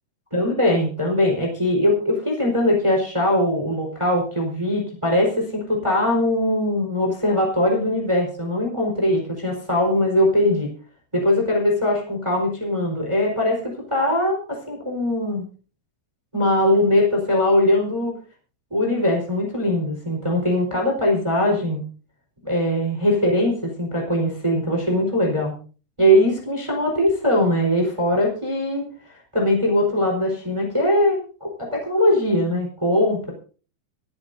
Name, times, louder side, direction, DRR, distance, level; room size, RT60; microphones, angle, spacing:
voice 1, 0.3-10.7 11.1-15.4 16.3-18.1 18.7-21.8 22.4-25.5 26.0-28.9 29.3-33.3, left 1 dB, 5° right, 0 dB, 4.0 m, -21 dB
26.0 x 10.5 x 2.7 m, 0.38 s
omnidirectional pair, 4.7 m